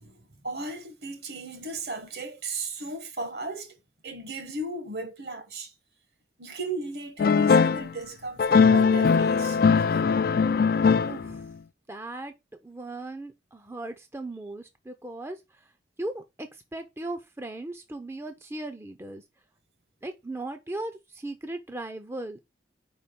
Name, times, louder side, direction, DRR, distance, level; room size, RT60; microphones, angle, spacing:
voice 1, 0.0-3.8 4.0-5.7 6.4-9.6, right 2 dB, 60° right, 1.2 m, -36 dB
sound 1, 7.2-7.9 8.4-11.5, left 5 dB, 50° left, 0.3 m, -20 dB
voice 2, 11.1-11.5 11.9-12.3 12.6-15.6 16.0-19.2 20.0-22.4, right 2 dB, 15° right, 0.5 m, -37 dB
4.9 x 4.2 x 5.2 m
head